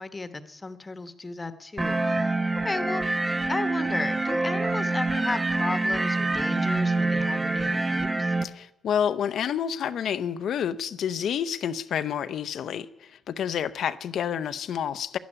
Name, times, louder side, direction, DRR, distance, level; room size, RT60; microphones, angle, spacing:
voice 1, 0.0-2.3 2.6-3.2 3.5-8.3, left 3 dB, 20° left, 1.2 m, -34 dB
sound 1, 1.8-8.4, right 2 dB, 20° right, 0.9 m, -26 dB
voice 2, 8.4-15.2, left 8 dB, 65° left, 0.7 m, -29 dB
11.5 x 11.0 x 9.9 m
cardioid pair, 90°, 0 cm